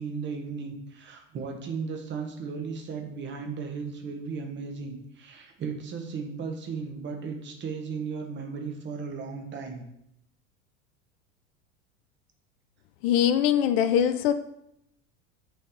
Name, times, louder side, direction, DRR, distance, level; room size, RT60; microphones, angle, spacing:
voice 1, 0.0-9.8, right 5 dB, 30° right, 3 dB, 1.1 m, -35 dB
voice 2, 13.0-14.3, left 9 dB, 50° left, 11 dB, 0.5 m, -22 dB
6.1 x 3.4 x 4.6 m, 0.79 s
figure-of-eight pair, 80°, 38 cm